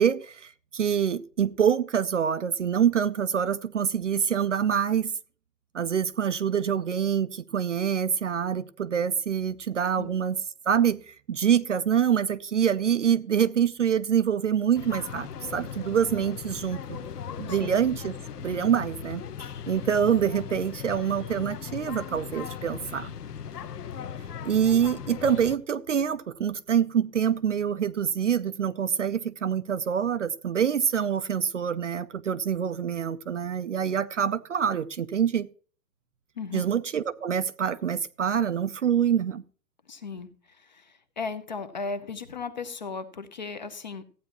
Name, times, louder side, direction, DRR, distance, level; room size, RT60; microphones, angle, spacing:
voice 1, 0.0-5.1 5.7-10.4 10.7-17.0 17.4-18.1 18.4-19.2 19.7-23.1 24.4-35.5 36.5-39.4, right 8 dB, 50° right, 0.5 m, -25 dB
sound 1, 14.7-25.6, left 8 dB, 70° left, 1.2 m, -38 dB
voice 2, 39.9-40.3 40.6-44.0, left 4 dB, 30° left, 0.7 m, -36 dB
15.0 x 9.1 x 2.9 m
hypercardioid pair, 170°, 49 cm